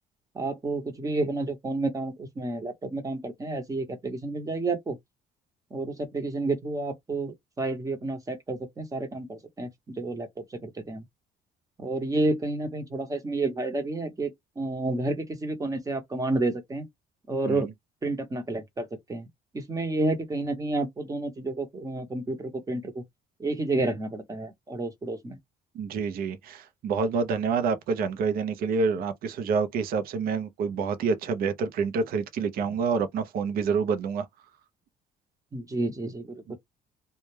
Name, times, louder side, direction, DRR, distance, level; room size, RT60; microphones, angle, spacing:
voice 1, 0.3-5.0 5.7-11.0 11.8-14.3 14.6-16.9 17.3-17.7 18.0-19.3 19.5-23.0 23.4-25.4 35.5-36.6, right 2 dB, 20° right, 0.8 m, -30 dB
voice 2, 25.7-34.3, right 5 dB, 60° right, 0.6 m, -27 dB
2.2 x 2.1 x 3.2 m
cardioid pair, 110°, 17 cm